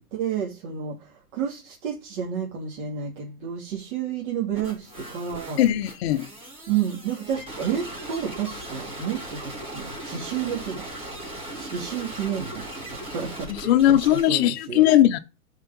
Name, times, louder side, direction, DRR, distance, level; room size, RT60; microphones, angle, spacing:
voice 1, 0.1-5.6 6.7-10.9 11.5-12.6 12.9-14.0 14.3-14.8, right 8 dB, 45° right, 2.5 m, -30 dB
sound 1, 4.5-14.2, right 1 dB, 10° right, 4.4 m, -38 dB
voice 2, 5.6-6.3 13.6-15.2, left 12 dB, 40° left, 0.7 m, -19 dB
6.7 x 4.8 x 5.2 m
hypercardioid pair, 130°, 47 cm